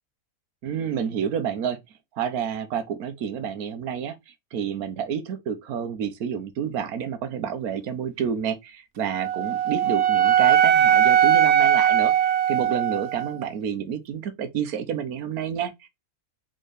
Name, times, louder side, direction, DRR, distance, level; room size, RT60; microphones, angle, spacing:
voice 1, 0.6-1.8 2.1-15.9, right 8 dB, 80° right, 1.4 m, -29 dB
Wind instrument woodwind instrument, 9.1-13.3, right 9 dB, 60° right, 0.8 m, -19 dB
4.5 x 4.4 x 4.8 m
omnidirectional pair, 1.6 m